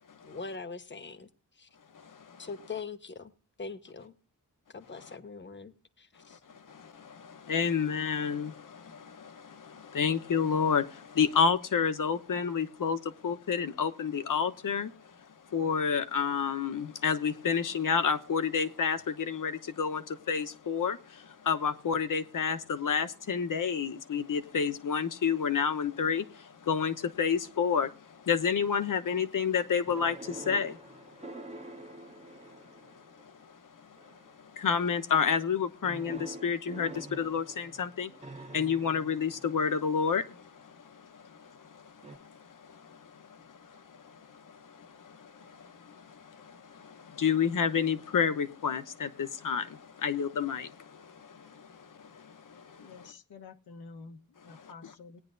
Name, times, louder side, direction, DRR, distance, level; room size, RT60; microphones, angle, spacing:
voice 1, 0.2-1.3 1.6-1.7 2.4-3.3 3.6-4.1 4.7-6.4, left 4 dB, 30° left, 1.1 m, -42 dB
voice 2, 1.9-2.5 6.3-14.9 15.5-32.5 32.9-33.6 34.4-53.1 54.5-54.9, left 6 dB, 60° left, 1.0 m, -31 dB
sound 1, 29.9-33.2 34.0-34.4 35.8-39.9 42.0-42.2, right 2 dB, 20° right, 1.1 m, -46 dB
voice 3, 52.8-55.2, left 4 dB, 90° left, 1.2 m, -49 dB
19.0 x 9.7 x 2.6 m
wide cardioid pair, 95°, 36 cm